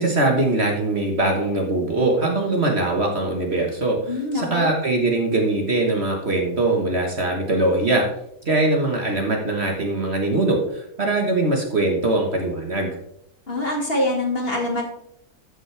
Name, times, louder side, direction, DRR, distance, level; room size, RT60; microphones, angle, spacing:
voice 1, 0.0-8.0 8.4-12.9, right 2 dB, 45° right, 1 dB, 1.6 m, -22 dB
voice 2, 4.1-4.7 13.5-14.8, left 1 dB, 35° left, 0 dB, 2.3 m, -24 dB
13.0 x 7.4 x 3.4 m, 0.73 s
omnidirectional pair, 1.7 m